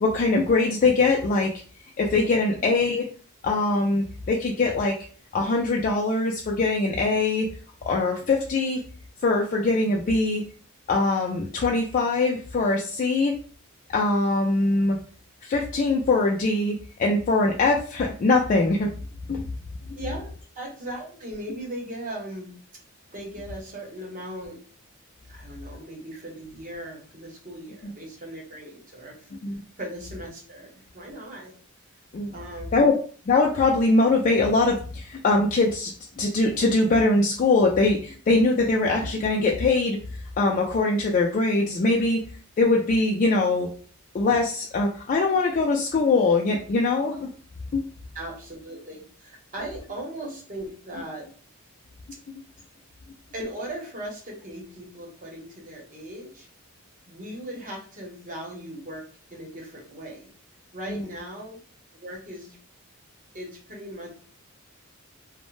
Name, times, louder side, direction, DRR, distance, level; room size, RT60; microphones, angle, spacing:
voice 1, 0.0-1.5 2.0-3.1 3.4-5.0 5.3-7.5 7.9-8.8 9.2-10.4 10.9-13.4 13.9-15.0 15.4-18.9 19.3-19.4 27.8-27.9 29.4-29.6 32.1-32.3 32.7-33.0 33.3-35.9 36.2-40.0 40.4-42.2 42.6-43.7 44.1-47.3 47.7-47.8, left 3 dB, 40° left, -1 dB, 0.3 m, -22 dB
voice 2, 19.9-22.5 23.1-24.6 25.2-29.3 29.8-31.5 32.3-32.9 48.1-51.3 53.3-56.5 57.1-59.1 59.3-60.3 60.7-61.6 61.9-62.6 63.3-64.1, right 1 dB, 40° right, -1 dB, 0.9 m, -38 dB
2.5 x 2.1 x 3.1 m, 0.43 s
head